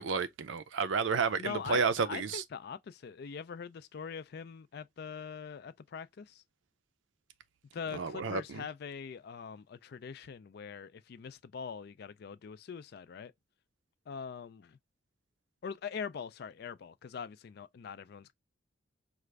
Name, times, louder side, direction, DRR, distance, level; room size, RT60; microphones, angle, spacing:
voice 1, 0.0-2.4 7.9-8.7, right 5 dB, 75° right, 0.5 m, -31 dB
voice 2, 1.4-6.4 7.7-13.3 14.1-14.8 15.6-18.3, left 6 dB, 55° left, 0.3 m, -43 dB
4.7 x 2.5 x 3.2 m
head